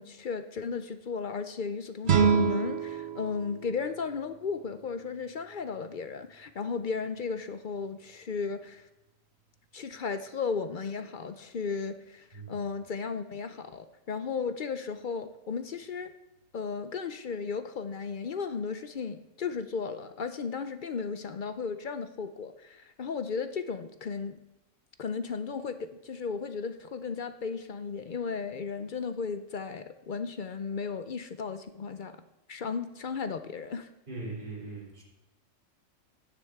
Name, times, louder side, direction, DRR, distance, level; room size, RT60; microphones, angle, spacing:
voice 1, 0.0-8.9 9.7-16.1 16.5-24.4 25.0-32.2 32.5-33.9, left 5 dB, 55° left, 9 dB, 0.5 m, -35 dB
sound 1, 2.0-5.1, right 6 dB, 50° right, 1.2 m, -28 dB
voice 2, 34.1-35.0, right 3 dB, 35° right, -5 dB, 3.5 m, -40 dB
16.0 x 9.8 x 3.6 m, 0.92 s
omnidirectional pair, 1.4 m